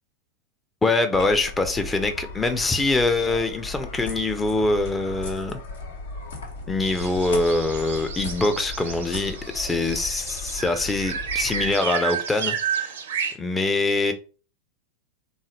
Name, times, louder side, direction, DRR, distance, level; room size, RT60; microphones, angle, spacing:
voice 1, 0.8-5.6 6.7-12.9 13.4-14.1, left 2 dB, 10° left, 0.6 m, -24 dB
sound 1, 1.1-11.7, left 3 dB, 70° left, 1.2 m, -37 dB
sound 2, 6.8-13.3, right 7 dB, 60° right, 0.7 m, -31 dB
3.7 x 2.7 x 3.1 m
figure-of-eight pair, 90°, 0 cm